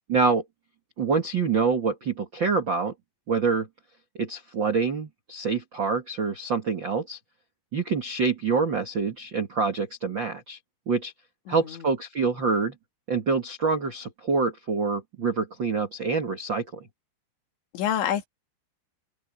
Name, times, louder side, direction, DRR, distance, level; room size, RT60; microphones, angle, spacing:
voice 1, 0.1-0.4 1.0-2.9 3.3-3.7 4.1-7.2 7.7-10.6 10.9-11.1 11.5-12.7 13.1-16.9, right 4 dB, 60° right, 1.2 m, -26 dB
voice 2, 11.5-11.9 17.7-18.3, left 10 dB, 75° left, 4.2 m, -27 dB
open air
omnidirectional pair, 5.4 m